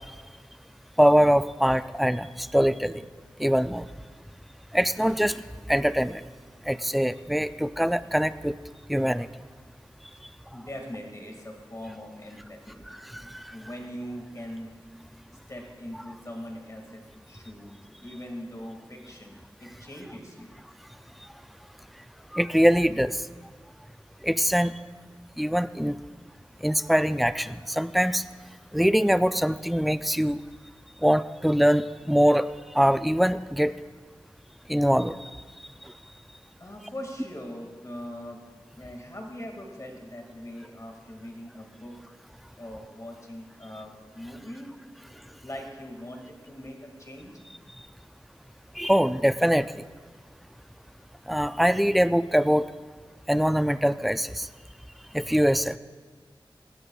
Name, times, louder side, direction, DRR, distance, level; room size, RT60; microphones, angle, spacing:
voice 1, 1.0-3.0 3.4-3.9 4.7-5.4 5.7-6.2 6.7-8.5 8.9-9.3 13.3-13.4 22.3-23.2 24.2-24.7 25.4-26.0 26.6-28.2 28.7-30.4 31.0-32.5 32.7-33.7 34.7-35.2 48.8-49.7 51.3-52.7 53.3-54.5 55.1-55.8, equal, ahead, 13 dB, 0.4 m, -23 dB
voice 2, 10.5-14.7 15.5-20.6 36.6-38.4 38.7-42.0 42.6-44.7 45.4-47.3, equal, 40° left, 1 dB, 2.1 m, -41 dB
19.0 x 16.0 x 2.4 m, 1.5 s
wide cardioid pair, 70°, 9 cm